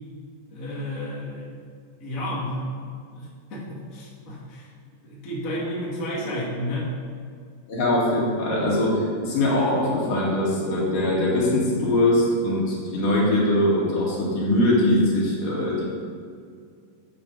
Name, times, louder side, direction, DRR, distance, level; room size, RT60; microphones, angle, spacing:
voice 1, 0.5-1.5 2.0-2.6 3.1-4.7 5.0-6.9, left 1 dB, 30° left, -6 dB, 2.0 m, -31 dB
voice 2, 7.7-15.8, left 1 dB, 70° left, -5 dB, 3.8 m, -22 dB
14.0 x 7.6 x 3.9 m, 2.2 s
omnidirectional pair, 3.9 m